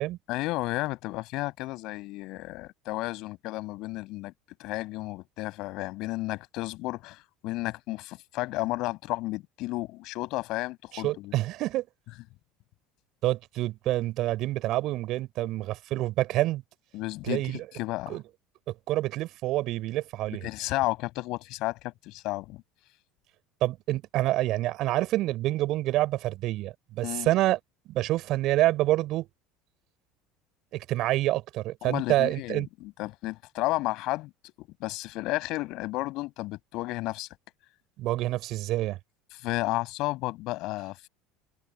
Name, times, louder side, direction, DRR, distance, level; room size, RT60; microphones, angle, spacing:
voice 1, 0.3-4.3 4.6-11.3 16.9-18.2 20.4-22.6 27.0-27.3 31.8-34.3 34.6-37.3 39.3-41.1, left 20 dB, 60° left, 7.5 m, -32 dB
voice 2, 10.9-11.9 13.2-16.6 17.2-17.7 18.1-18.2 18.7-20.4 23.6-27.6 27.9-29.3 30.7-32.7 38.0-39.0, right 16 dB, 55° right, 4.3 m, -27 dB
open air
hypercardioid pair, 70°, 0 cm